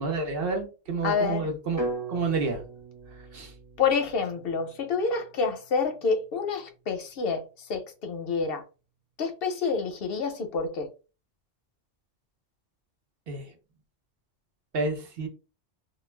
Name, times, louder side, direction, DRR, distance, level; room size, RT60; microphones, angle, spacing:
voice 1, 0.0-2.6 3.3-3.5 13.3-13.5 14.7-15.3, right 3 dB, 55° right, 0.8 m, -29 dB
voice 2, 1.0-1.5 3.8-8.6 9.2-10.9, left 5 dB, 60° left, 0.7 m, -28 dB
sound 1, 1.8-5.8, right 2 dB, 20° right, 0.5 m, -38 dB
2.3 x 2.1 x 3.1 m
omnidirectional pair, 1.2 m